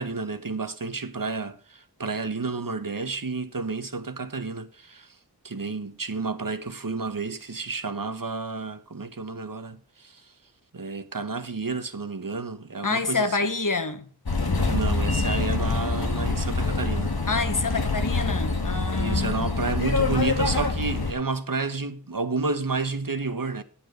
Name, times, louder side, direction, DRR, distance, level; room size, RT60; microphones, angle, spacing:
voice 1, 0.0-5.1 5.4-10.2 10.7-13.4 14.7-17.1 19.0-23.6, right 4 dB, 60° right, 1.2 m, -31 dB
voice 2, 12.8-14.1 17.3-19.4, left 3 dB, 55° left, 1.5 m, -27 dB
sound 1, 14.3-21.1, left 3 dB, 75° left, 1.8 m, -25 dB
9.4 x 8.8 x 5.1 m
wide cardioid pair, 45°, 37 cm